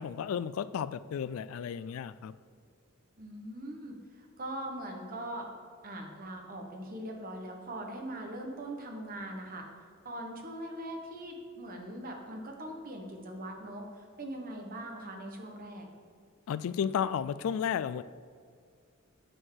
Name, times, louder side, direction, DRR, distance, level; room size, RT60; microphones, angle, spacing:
voice 1, 0.0-2.3 16.5-18.0, left 8 dB, 70° left, 16 dB, 0.3 m, -33 dB
voice 2, 3.2-5.5 5.8-9.7 10.0-15.9, right 1 dB, 45° right, 2 dB, 1.3 m, -41 dB
8.9 x 4.6 x 6.4 m, 2.1 s
head